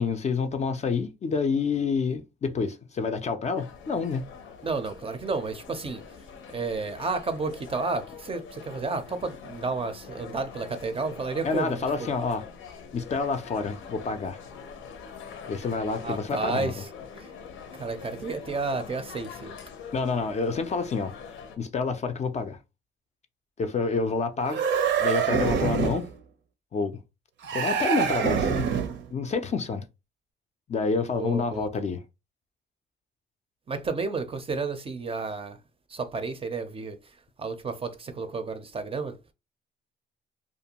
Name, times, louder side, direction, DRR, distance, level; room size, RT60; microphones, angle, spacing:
voice 1, 0.0-4.3 11.4-12.4 12.9-14.4 15.5-16.8 19.9-21.1 21.6-22.6 23.6-24.6 25.0-26.1 26.7-27.0 27.5-28.7 29.1-29.8 30.7-32.0, left 4 dB, 35° left, 0.4 m, -28 dB
sound 1, 3.6-21.6, left 6 dB, 85° left, 0.6 m, -44 dB
voice 2, 4.6-6.0 6.5-12.1 16.0-16.9 17.8-19.5 31.0-31.7 33.7-35.6 35.9-37.0 37.4-39.2, right 4 dB, 30° right, 0.5 m, -31 dB
sound 2, 24.5-26.1 27.4-29.1, right 7 dB, 70° right, 0.6 m, -25 dB
2.5 x 2.2 x 2.8 m
cardioid pair, 90°, 20 cm